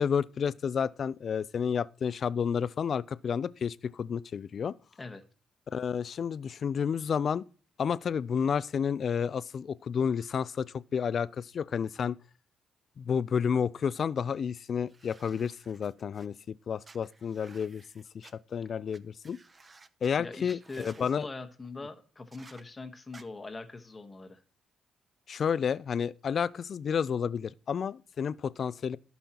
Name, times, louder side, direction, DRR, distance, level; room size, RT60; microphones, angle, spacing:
voice 1, 0.0-4.7 5.7-7.5 7.8-12.2 13.0-19.4 20.0-21.3 25.3-29.0, left 7 dB, 50° left, 0.3 m, -31 dB
sound 1, 14.9-16.3 16.8-18.3 18.9-19.0 19.2-20.1 20.5-21.2 22.3-22.6 23.1-23.2, right 4 dB, 30° right, 0.7 m, -55 dB
voice 2, 20.2-24.4, left 3 dB, 25° left, 1.2 m, -42 dB
16.0 x 5.5 x 2.9 m
cardioid pair, 90°, 0 cm